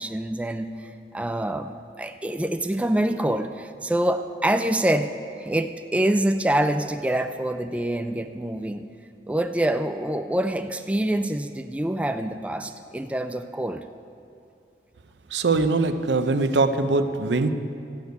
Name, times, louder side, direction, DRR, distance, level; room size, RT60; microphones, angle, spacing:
voice 1, 0.0-5.1 5.4-8.8 9.3-13.8, right 1 dB, 10° right, 7 dB, 0.3 m, -26 dB
voice 2, 15.3-17.5, right 3 dB, 85° right, 9 dB, 0.7 m, -22 dB
13.0 x 6.9 x 9.2 m, 2.5 s
head